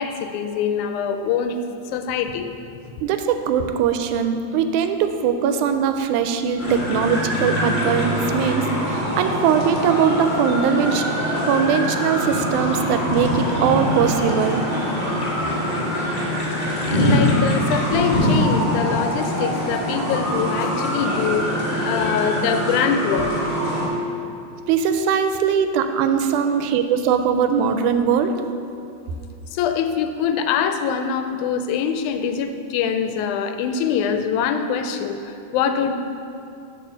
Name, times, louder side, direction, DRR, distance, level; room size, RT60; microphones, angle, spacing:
voice 1, 0.0-1.6 1.9-2.5 16.9-21.5 21.9-23.3 26.4-26.5 29.5-35.9, left 7 dB, 85° left, 7 dB, 2.0 m, -24 dB
voice 2, 3.0-11.0 11.5-14.7 24.7-28.3, right 7 dB, 90° right, 8 dB, 2.0 m, -21 dB
sound 1, 6.6-23.9, equal, 30° left, 0.8 m, -23 dB
7.9 x 4.4 x 6.2 m, 2.5 s
omnidirectional pair, 3.4 m